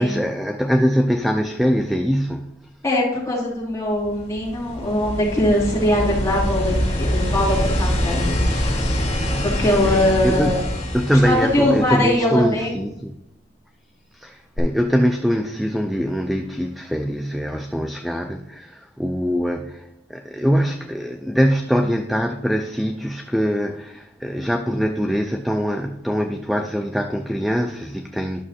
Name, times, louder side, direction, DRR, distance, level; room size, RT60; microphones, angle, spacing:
voice 1, 0.0-2.5 9.8-10.5 10.9-13.1 14.1-28.4, equal, ahead, 0.3 m, -23 dB
voice 2, 2.8-8.6 9.4-10.6 11.2-12.7, left 1 dB, 15° left, 2.6 m, -21 dB
sound 1, 3.9-12.4 14.6-14.7, equal, 35° left, 2.8 m, -24 dB
11.0 x 6.1 x 2.7 m
head